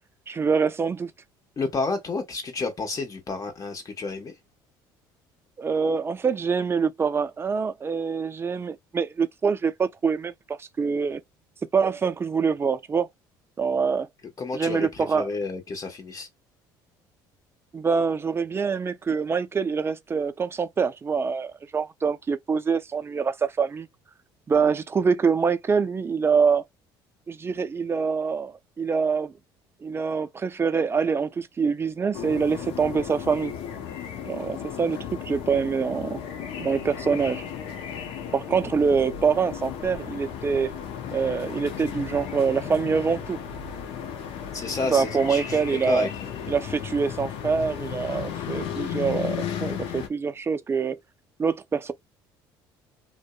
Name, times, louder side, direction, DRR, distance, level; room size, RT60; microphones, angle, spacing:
voice 1, 0.3-1.1 5.6-11.2 11.7-13.1 13.6-14.1 14.5-15.3 17.7-23.9 24.5-26.6 27.3-29.3 29.8-33.5 34.2-36.2 36.6-37.4 38.3-40.7 41.1-43.4 44.9-46.1 46.5-51.0 51.4-51.9, right 5 dB, 25° right, 0.4 m, -25 dB
voice 2, 1.6-4.3 14.4-16.3 44.5-45.6 45.9-46.3, left 3 dB, 35° left, 1.1 m, -30 dB
sound 1, 32.1-50.1, left 8 dB, 70° left, 0.6 m, -35 dB
2.6 x 2.1 x 2.3 m
supercardioid pair, 80°, 10 cm